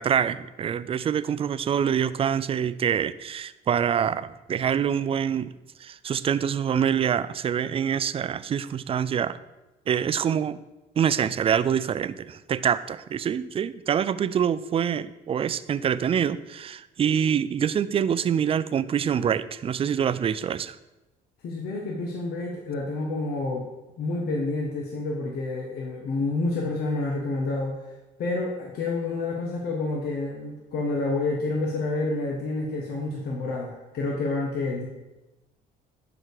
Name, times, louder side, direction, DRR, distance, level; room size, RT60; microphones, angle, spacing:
voice 1, 0.0-5.5 5.8-9.4 9.9-10.6 11.0-20.8, right 8 dB, 35° right, 15 dB, 0.4 m, -25 dB
voice 2, 21.4-23.7 24.0-27.9 28.2-34.9, left 2 dB, 70° left, -1 dB, 1.5 m, -29 dB
12.0 x 5.0 x 4.9 m, 1.0 s
cardioid pair, 110°, 17 cm